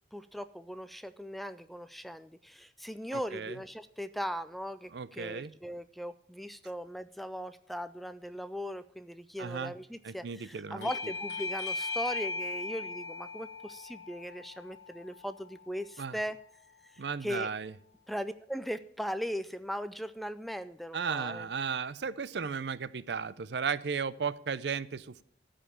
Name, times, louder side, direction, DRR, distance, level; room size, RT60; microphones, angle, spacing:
voice 1, 0.1-16.4 16.8-17.5 18.1-21.5, equal, ahead, 12 dB, 0.3 m, -39 dB
voice 2, 3.1-3.6 4.9-5.5 9.4-9.7 10.0-10.9 16.0-16.2 17.0-17.7 20.9-25.2, right 6 dB, 65° right, 17 dB, 0.5 m, -35 dB
Bell / Doorbell, 10.8-16.0, left 3 dB, 70° left, 0.7 m, -38 dB
13.5 x 5.1 x 8.6 m, 0.68 s
head